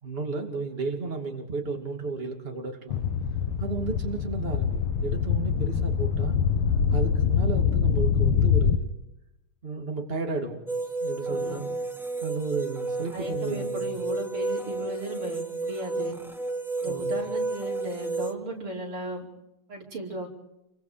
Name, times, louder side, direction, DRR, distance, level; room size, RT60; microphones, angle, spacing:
voice 1, 0.0-3.0 3.6-6.4 6.9-8.9 9.6-10.6 11.0-11.7 12.2-14.0 16.8-17.2, right 4 dB, 25° right, 2 dB, 2.8 m, -33 dB
sound 1, 2.9-8.8, left 7 dB, 85° left, 2.0 m, -24 dB
sound 2, 10.7-18.3, right 3 dB, ahead, 1.1 m, -31 dB
voice 2, 11.3-11.6 13.1-16.1 16.8-19.3 19.7-20.3, equal, 75° right, -1 dB, 5.7 m, -36 dB
29.0 x 24.0 x 5.1 m, 0.88 s
omnidirectional pair, 2.3 m